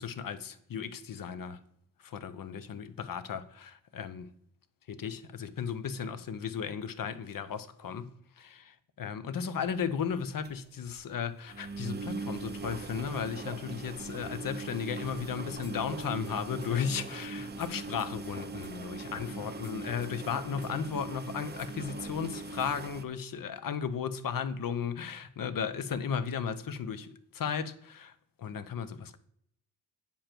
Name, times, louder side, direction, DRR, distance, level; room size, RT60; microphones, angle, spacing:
voice 1, 0.0-1.6 2.0-4.3 5.0-8.1 8.4-28.1 28.4-29.2, left 7 dB, 55° left, 0.8 m, -35 dB
sound 1, 9.7-9.8 10.1-10.2 10.4-10.5 10.9-11.0 11.5-23.0, right 3 dB, 25° right, 0.6 m, -40 dB
sound 2, 15.1-15.7 16.0-17.7 18.0-18.3 18.6-18.7 19.0-19.7 20.0-20.3 20.6-20.7 21.1-21.7 22.0-22.1 22.6-22.7, left 2 dB, 25° left, 1.5 m, -52 dB
8.9 x 7.2 x 4.5 m
wide cardioid pair, 165°, 40 cm